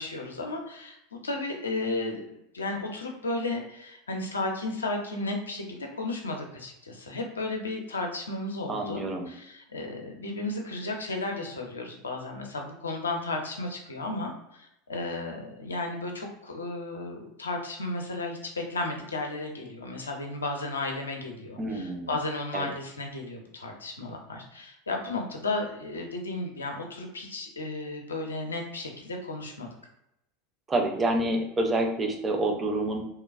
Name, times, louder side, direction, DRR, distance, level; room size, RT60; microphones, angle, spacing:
voice 1, 0.0-29.7, left 2 dB, 80° left, 2 dB, 0.5 m, -34 dB
voice 2, 8.7-9.3 21.6-22.1 22.5-22.7 30.7-33.0, right 1 dB, 25° right, 2 dB, 0.6 m, -27 dB
3.0 x 2.2 x 2.3 m, 0.82 s
figure-of-eight pair, 80°, 0 cm